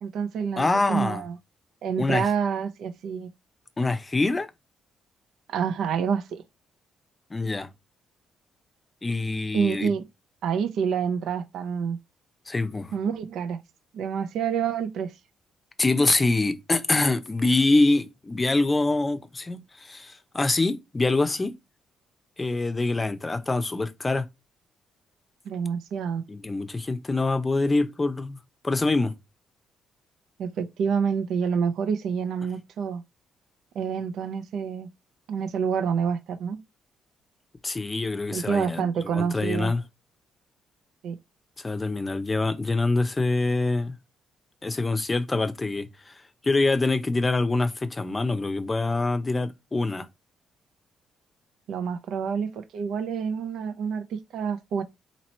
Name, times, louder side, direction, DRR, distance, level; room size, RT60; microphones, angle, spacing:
voice 1, 0.0-1.3 1.8-3.3 5.5-6.4 9.5-10.0 10.4-12.0 12.9-13.6 13.9-15.1 25.5-26.2 30.4-33.0 33.7-34.9 35.3-36.6 38.3-39.7 41.0-41.2 51.7-54.8, right 6 dB, 75° right, 0.6 m, -27 dB
voice 2, 0.6-1.2 2.0-2.3 3.8-4.5 7.3-7.7 9.0-9.9 12.5-12.9 15.8-21.5 22.4-24.3 26.3-28.4 28.6-29.1 37.6-39.8 41.6-44.0 44.6-50.1, left 2 dB, 25° left, 0.6 m, -25 dB
2.9 x 2.9 x 4.2 m
cardioid pair, 90°, 0 cm